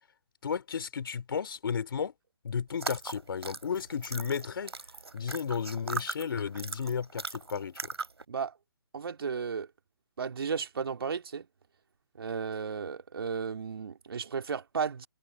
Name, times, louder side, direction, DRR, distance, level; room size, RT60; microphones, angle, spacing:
voice 1, 0.4-2.1 2.4-4.7 5.1-7.8, left 6 dB, 60° left, 3.7 m, -33 dB
sound 1, 2.7-8.2, right 4 dB, 80° right, 3.8 m, -39 dB
voice 2, 8.9-9.7 10.2-11.5 12.2-15.1, right 6 dB, 65° right, 2.4 m, -34 dB
figure-of-eight pair, 140°, 13 cm